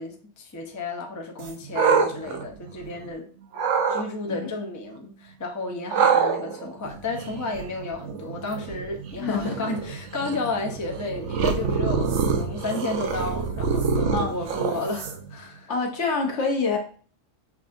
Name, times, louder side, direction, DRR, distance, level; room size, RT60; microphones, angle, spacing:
voice 1, 0.0-3.3 3.9-15.7, left 3 dB, 25° left, 0.4 m, -32 dB
sound 1, 1.4-3.1 3.5-4.0 5.9-15.4, right 5 dB, 70° right, 0.9 m, -26 dB
voice 2, 9.2-9.7 14.1-14.3 15.7-16.8, left 4 dB, 65° left, 1.1 m, -26 dB
6.0 x 2.6 x 2.5 m
omnidirectional pair, 1.3 m